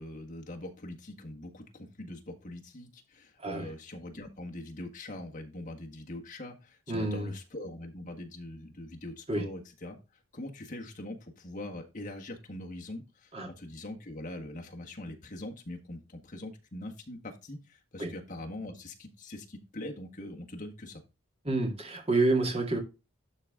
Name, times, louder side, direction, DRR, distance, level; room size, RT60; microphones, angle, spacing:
voice 1, 0.0-10.0 10.3-21.0, left 1 dB, 35° left, 1.6 m, -42 dB
voice 2, 6.9-7.3 9.3-9.4 13.3-13.5 18.0-18.1 21.4-22.8, right 2 dB, 30° right, 2.1 m, -28 dB
12.0 x 4.0 x 3.7 m
head